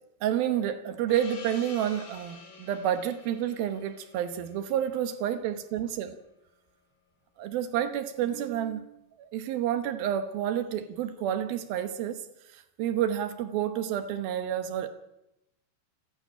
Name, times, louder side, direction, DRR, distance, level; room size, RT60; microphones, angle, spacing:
voice 1, 0.2-6.2 7.4-12.2 12.5-14.9, right 10 dB, 80° right, 2.1 m, -30 dB
Gong, 1.1-6.2, left 4 dB, 85° left, 6.3 m, -49 dB
29.5 x 12.0 x 8.7 m
omnidirectional pair, 5.9 m